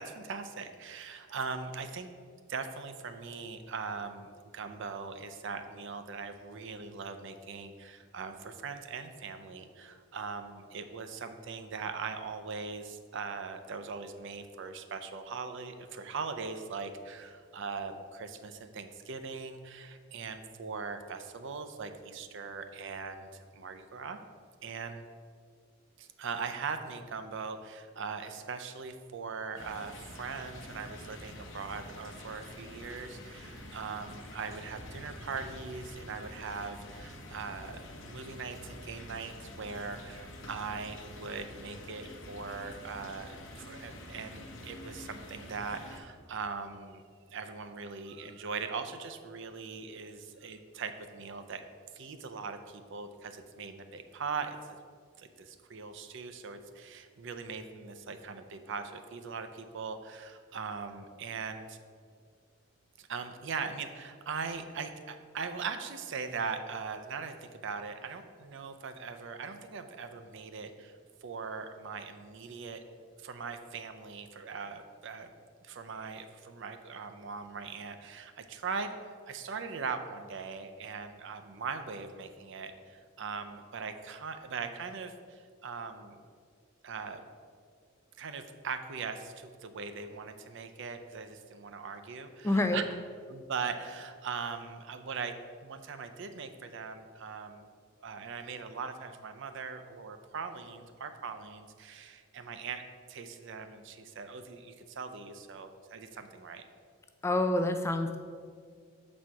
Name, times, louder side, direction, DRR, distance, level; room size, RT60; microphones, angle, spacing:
voice 1, 0.0-2.1 2.5-24.2 24.6-25.0 26.0-47.0 47.3-51.6 51.9-54.8 55.2-61.8 63.0-70.9 71.2-72.8 73.2-75.3 75.6-86.2 86.8-87.2 88.2-92.8 93.3-95.3 95.6-97.7 98.0-102.8 103.1-106.7, right 5 dB, 60° right, 8 dB, 0.5 m, -40 dB
sound 1, 29.6-46.0, left 1 dB, 65° left, 0.8 m, -47 dB
voice 2, 92.4-92.8 107.2-108.2, left 1 dB, 15° left, 7 dB, 0.4 m, -27 dB
7.6 x 4.2 x 4.6 m, 2.1 s
head